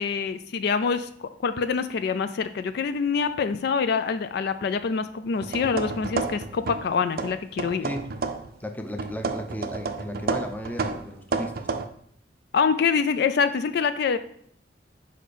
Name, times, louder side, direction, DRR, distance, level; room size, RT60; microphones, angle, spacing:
voice 1, 0.0-7.8 12.5-14.2, left 5 dB, 60° left, 11 dB, 0.3 m, -25 dB
sound 1, 5.3-6.9 7.2-8.6 9.0-11.9, right 4 dB, 55° right, 0.5 m, -31 dB
voice 2, 7.8-8.1 8.6-11.9, equal, 10° left, 5 dB, 0.6 m, -35 dB
5.0 x 4.3 x 5.0 m, 0.66 s
head